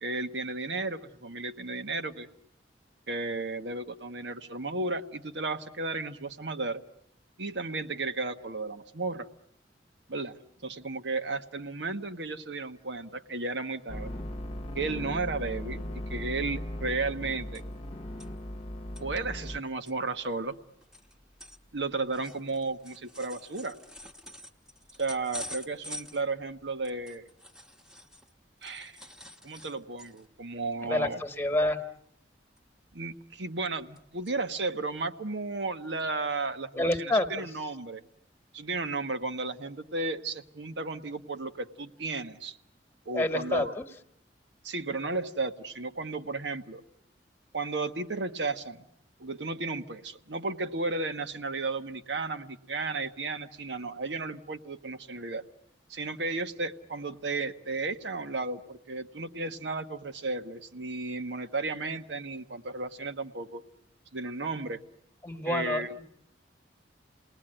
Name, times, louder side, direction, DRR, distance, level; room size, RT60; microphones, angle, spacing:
voice 1, 0.0-2.3 3.1-6.8 7.4-9.3 10.1-10.3 10.6-14.1 14.7-17.6 19.0-20.5 21.7-23.8 25.0-27.2 28.6-29.0 29.4-31.2 32.9-38.0 38.5-42.6 43.1-43.7 44.6-46.8 47.5-48.8 49.2-55.4 55.9-63.6 64.1-64.8 65.5-65.9, right 3 dB, 80° right, 9 dB, 1.2 m, -34 dB
sound 1, 13.9-19.6, left 1 dB, 35° left, 1.0 m, -38 dB
sound 2, 17.5-17.9 18.2-18.3 18.7-19.0 19.5-19.6 19.8-28.3 28.6-30.4 30.8-30.9 31.3-31.5 32.6-33.1 33.5-34.0 34.3-34.4 35.0-35.1, left 1 dB, 5° right, 1.2 m, -47 dB
voice 2, 30.8-31.8 36.7-37.6 43.1-43.8 65.2-66.0, left 1 dB, 15° left, 7 dB, 1.4 m, -28 dB
29.5 x 19.5 x 8.9 m, 0.77 s
head